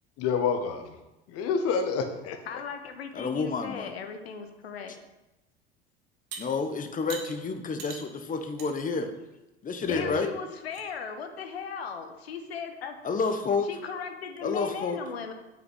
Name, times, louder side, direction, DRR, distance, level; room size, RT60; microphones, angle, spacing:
voice 1, 0.2-1.0 1.3-2.4 9.9-10.1, left 6 dB, 50° left, 7 dB, 1.3 m, -28 dB
voice 2, 2.5-4.9 9.9-13.0 13.6-15.3, left 6 dB, 75° left, 6 dB, 1.1 m, -37 dB
voice 3, 3.1-3.9 6.4-9.1 9.6-10.3 13.0-13.7 14.4-15.0, left 4 dB, 25° left, 8 dB, 1.1 m, -29 dB
sound 1, 6.3-6.4 7.1-7.3 7.8-8.0 8.6-8.7 9.1-9.2 9.9-10.0 10.4-10.8 12.5-12.6 13.1-13.4, right 6 dB, 50° right, 2.0 m, -41 dB
7.7 x 5.9 x 5.6 m, 0.98 s
figure-of-eight pair, 70°, 31 cm